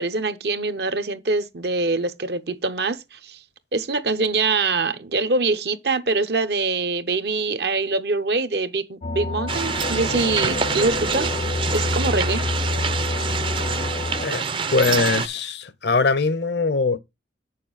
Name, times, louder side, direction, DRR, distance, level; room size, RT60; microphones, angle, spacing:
voice 1, 0.0-3.4 3.7-11.3 11.7-12.4, right 3 dB, 65° right, 0.8 m, -24 dB
sound 1, 9.0-14.3, left 2 dB, 40° left, 0.4 m, -27 dB
sound 2, 9.5-15.3, right 5 dB, 30° right, 0.5 m, -26 dB
voice 2, 14.2-17.0, left 4 dB, 70° left, 0.7 m, -22 dB
7.8 x 6.7 x 3.9 m
head